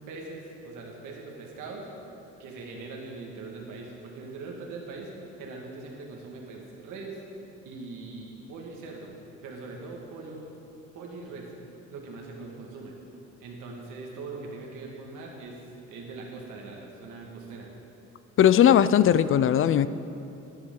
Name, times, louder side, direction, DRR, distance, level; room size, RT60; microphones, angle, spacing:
voice 1, 0.1-1.9 2.4-5.1 5.4-7.2 7.6-9.1 9.4-10.5 10.9-11.5 11.9-13.0 13.4-15.6 15.9-17.7, right 3 dB, 85° right, -1 dB, 1.8 m, -41 dB
voice 2, 18.4-19.9, left 10 dB, 45° left, 15 dB, 0.4 m, -18 dB
11.0 x 10.5 x 3.8 m, 2.8 s
cardioid pair, 90°, 30 cm